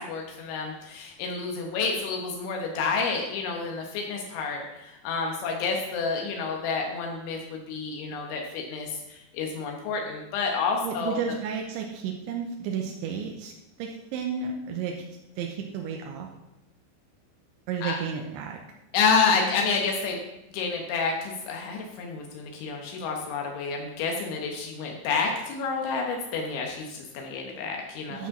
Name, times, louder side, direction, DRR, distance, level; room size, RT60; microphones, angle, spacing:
voice 1, 0.0-11.2 17.8-18.0 18.9-20.2 20.5-28.3, left 5 dB, 80° left, 1 dB, 3.4 m, -29 dB
voice 2, 10.8-13.5 13.8-15.1 15.4-16.3 17.7-18.6 28.1-28.3, right 6 dB, 85° right, 1 dB, 3.2 m, -32 dB
10.5 x 6.2 x 5.9 m, 0.93 s
omnidirectional pair, 5.4 m